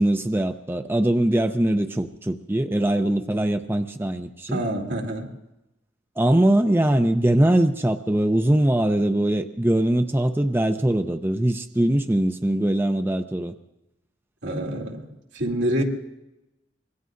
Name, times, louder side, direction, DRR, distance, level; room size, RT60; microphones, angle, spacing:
voice 1, 0.0-4.6 6.2-13.6, right 1 dB, 10° right, 7 dB, 0.5 m, -22 dB
voice 2, 4.5-5.3 14.4-15.1 15.3-15.8, right 1 dB, 85° right, -1 dB, 2.7 m, -26 dB
25.5 x 21.5 x 2.6 m, 0.93 s
head